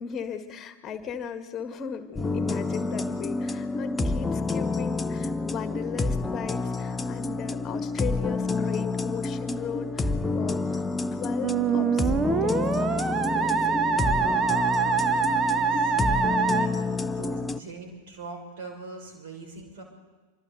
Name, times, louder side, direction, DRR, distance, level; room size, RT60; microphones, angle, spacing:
voice 1, 0.0-10.8 11.1-13.9 17.3-17.5, left 6 dB, 25° left, 9 dB, 1.7 m, -37 dB
sound 1, 2.2-17.6, left 3 dB, 10° left, 0.6 m, -29 dB
Musical instrument, 11.4-16.7, right 6 dB, 25° right, 1.1 m, -24 dB
voice 2, 14.7-19.8, right 3 dB, 55° right, 2 dB, 5.6 m, -43 dB
26.0 x 24.5 x 4.0 m, 1.2 s
figure-of-eight pair, 90°, 0 cm